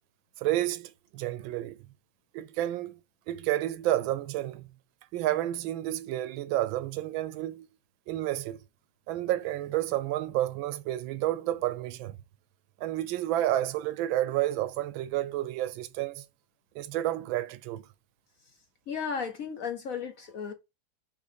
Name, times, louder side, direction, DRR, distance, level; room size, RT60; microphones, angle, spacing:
voice 1, 0.4-1.8 2.3-3.0 3.3-4.7 5.1-7.7 8.1-8.6 9.1-12.2 12.8-16.2 16.7-17.8, right 14 dB, 80° right, 1.3 m, -30 dB
voice 2, 18.9-20.5, left 6 dB, 60° left, 0.9 m, -34 dB
5.5 x 3.5 x 5.0 m
omnidirectional pair, 2.1 m